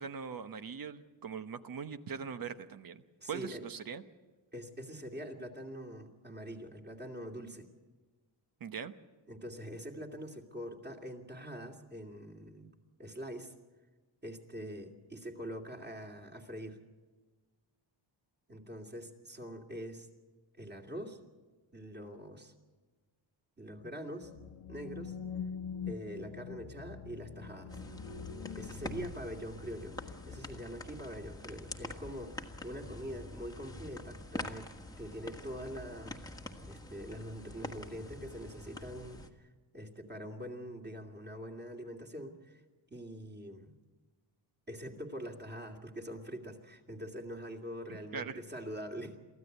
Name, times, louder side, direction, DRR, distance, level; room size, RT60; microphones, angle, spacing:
voice 1, 0.0-3.0 3.3-4.0 8.6-8.9 48.1-48.4, right 6 dB, 45° right, 11 dB, 1.1 m, -41 dB
voice 2, 3.2-3.6 4.5-7.7 9.3-12.7 13.0-13.5 14.2-16.8 18.5-20.1 20.5-21.2 21.7-22.5 23.6-24.3 24.7-25.2 25.9-27.8 28.6-34.7 35.0-36.4 36.7-42.6 42.9-43.8 44.7-49.2, equal, 20° right, 2 dB, 2.6 m, -44 dB
sound 1, 24.2-30.7, left 6 dB, 80° left, 1.3 m, -44 dB
sound 2, 27.7-39.3, left 1 dB, 10° left, 1.5 m, -46 dB
23.5 x 15.5 x 8.1 m, 1.3 s
cardioid pair, 120°, 48 cm